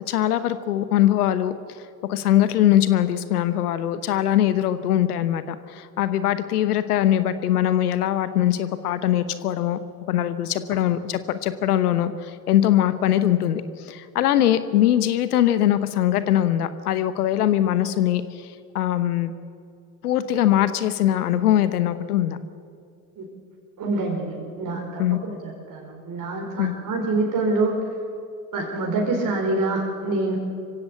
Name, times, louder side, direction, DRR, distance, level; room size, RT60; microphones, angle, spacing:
voice 1, 0.1-1.5 2.1-9.8 10.1-18.5 18.7-19.3 20.0-22.4 25.0-25.2 26.6-26.7, left 12 dB, 75° left, 13 dB, 1.1 m, -21 dB
voice 2, 23.8-25.0 25.7-25.8 26.0-27.7 28.5-30.4, right 2 dB, 45° right, 0 dB, 4.2 m, -25 dB
25.5 x 16.0 x 8.4 m, 2.4 s
figure-of-eight pair, 60°, 46 cm